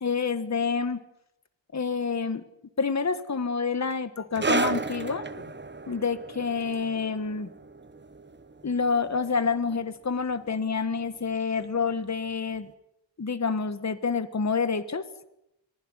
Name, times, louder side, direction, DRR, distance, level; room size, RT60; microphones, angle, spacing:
voice 1, 0.0-1.0 1.7-2.4 2.8-5.5 5.9-7.5 8.6-12.7 13.2-15.1, left 5 dB, 35° left, 13 dB, 1.5 m, -28 dB
sound 1, 4.4-11.4 11.6-11.8 12.6-12.7, right 3 dB, 25° right, 1.1 m, -34 dB
22.5 x 16.5 x 9.7 m, 0.84 s
wide cardioid pair, 90°, 47 cm